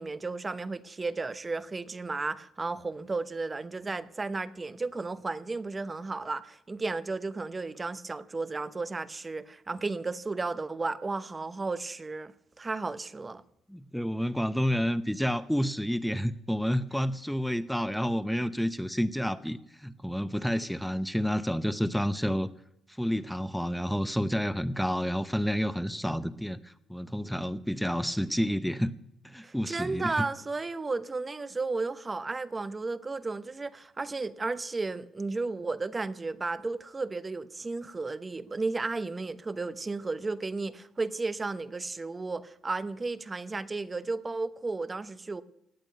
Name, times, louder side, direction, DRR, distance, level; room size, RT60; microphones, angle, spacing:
voice 1, 0.0-13.4 29.4-45.4, right 3 dB, 25° right, 0.9 m, -34 dB
voice 2, 13.7-22.5 22.9-29.0 29.2-30.3, equal, ahead, 0.7 m, -29 dB
17.5 x 9.0 x 9.2 m
cardioid pair, 90°, 0 cm